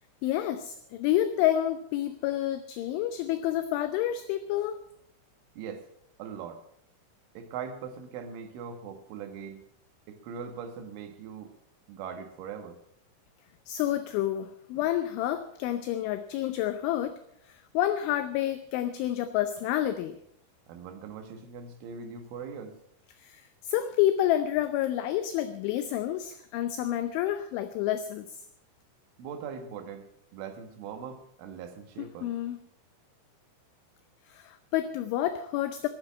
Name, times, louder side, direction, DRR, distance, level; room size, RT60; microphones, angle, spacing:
voice 1, 0.2-4.8 13.7-17.2 17.4-20.2 23.2-28.3 32.0-32.6 34.3-35.9, left 12 dB, 80° left, 9 dB, 2.9 m, -29 dB
voice 2, 5.6-5.9 6.2-6.6 7.4-9.6 10.1-11.5 11.9-12.8 20.7-22.8 29.2-30.1 30.3-32.3, right 6 dB, 70° right, 7 dB, 3.8 m, -41 dB
21.0 x 7.9 x 7.3 m, 0.71 s
omnidirectional pair, 6.0 m